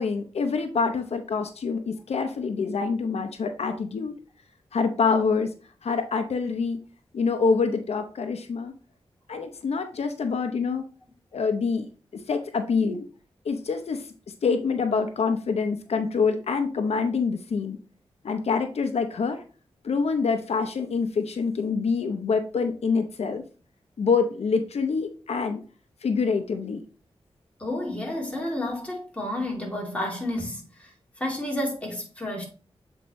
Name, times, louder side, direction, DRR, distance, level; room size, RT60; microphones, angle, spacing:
voice 1, 0.0-4.1 4.7-5.5 5.8-6.8 7.1-8.7 9.3-10.8 11.3-11.9 12.3-13.1 13.5-14.1 14.4-17.8 18.2-19.4 19.8-23.4 24.0-25.6 26.0-26.8, left 5 dB, 80° left, 0.7 m, -26 dB
voice 2, 27.6-32.5, left 1 dB, 10° left, 2.7 m, -31 dB
7.8 x 4.5 x 3.1 m
wide cardioid pair, 90°, 10 cm